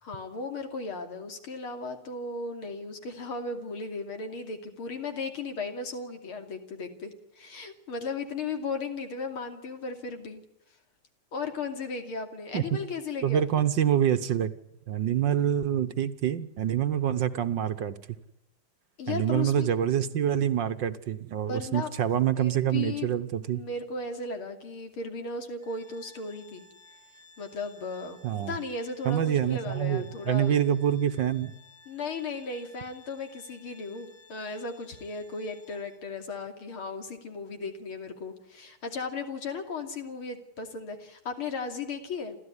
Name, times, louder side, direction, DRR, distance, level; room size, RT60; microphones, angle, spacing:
voice 1, 0.0-10.4 11.3-13.7 19.0-19.7 21.5-21.9 22.4-23.1 23.5-26.7 27.4-30.6 31.9-42.3, left 4 dB, 70° left, 6 dB, 3.5 m, -36 dB
voice 2, 13.2-14.5 14.9-18.0 19.1-23.6 28.2-28.6 29.0-31.5, right 10 dB, 60° right, 12 dB, 1.6 m, -26 dB
Organ, 25.6-36.3, left 3 dB, 20° left, 3.3 m, -57 dB
28.0 x 14.0 x 9.8 m, 0.88 s
omnidirectional pair, 2.4 m